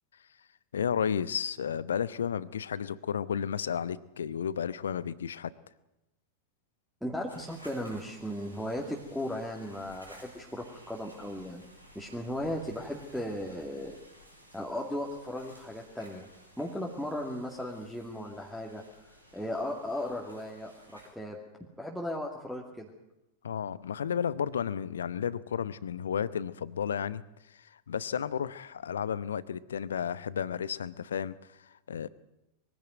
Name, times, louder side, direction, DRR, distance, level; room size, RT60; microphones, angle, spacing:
voice 1, 0.7-5.5 23.4-27.2 27.5-32.1, left 8 dB, 65° left, 18 dB, 0.8 m, -33 dB
voice 2, 7.0-11.6 11.9-13.9 14.5-16.3 16.6-18.8 19.3-21.4 21.8-22.9, left 1 dB, ahead, -1 dB, 2.4 m, -36 dB
sound 1, 7.3-21.1, equal, 90° right, 4.7 m, -55 dB
22.5 x 16.0 x 9.2 m, 0.92 s
figure-of-eight pair, 90°, 0 cm